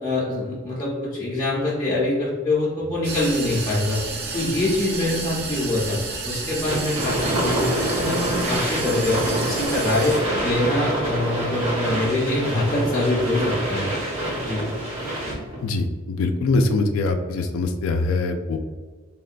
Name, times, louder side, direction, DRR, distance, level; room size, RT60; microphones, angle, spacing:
voice 1, 0.0-4.0 4.3-6.0 6.3-13.9 14.4-14.7, left 2 dB, 20° left, -8 dB, 0.5 m, -24 dB
sound 1, 3.0-10.7, right 3 dB, 50° right, 0.5 m, -31 dB
sound 2, 6.7-15.6, right 1 dB, 75° right, 1.3 m, -26 dB
voice 2, 15.6-18.6, left 3 dB, 75° left, 6 dB, 0.3 m, -23 dB
3.5 x 2.2 x 2.4 m, 1.4 s
head